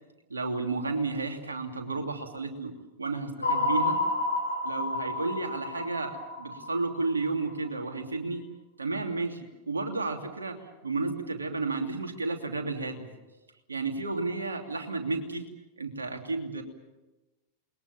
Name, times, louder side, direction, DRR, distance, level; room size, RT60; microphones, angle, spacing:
voice 1, 0.3-4.0 4.6-8.4 8.8-9.4 9.7-13.1 13.7-15.5 15.8-16.6, right 3 dB, 75° right, 4 dB, 3.0 m, -32 dB
sound 1, 3.4-7.7, left 2 dB, 75° left, 2.3 m, -30 dB
28.5 x 21.5 x 7.2 m, 1.1 s
figure-of-eight pair, 90°, 0 cm